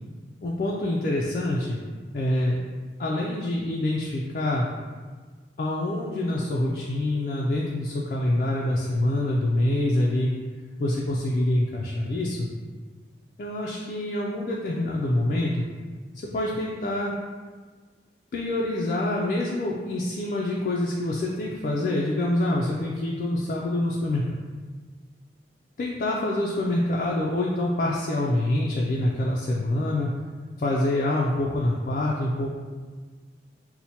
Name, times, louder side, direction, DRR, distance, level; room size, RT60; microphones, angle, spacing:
voice 1, 0.4-1.8 2.1-2.7 3.0-4.7 5.6-10.3 10.8-12.5 13.4-15.6 16.2-17.1 18.3-24.4 25.8-30.1 30.6-32.6, left 1 dB, 50° left, -4 dB, 0.3 m, -26 dB
4.3 x 2.1 x 2.7 m, 1.5 s
head